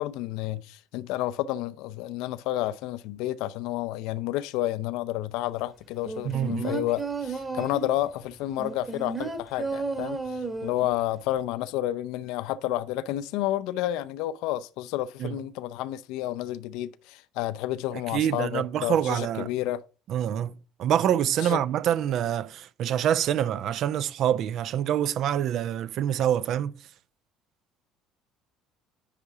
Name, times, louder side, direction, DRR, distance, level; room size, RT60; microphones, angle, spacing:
voice 1, 0.0-19.8 21.4-21.6, left 14 dB, 60° left, 0.4 m, -30 dB
sound 1, 6.1-8.0 8.6-11.0 11.3-11.4, right 4 dB, 20° right, 1.4 m, -33 dB
voice 2, 6.2-6.8 15.2-15.4 18.1-19.5 20.1-26.8, right 10 dB, 50° right, 0.4 m, -26 dB
10.0 x 3.6 x 4.7 m
figure-of-eight pair, 55°, 0 cm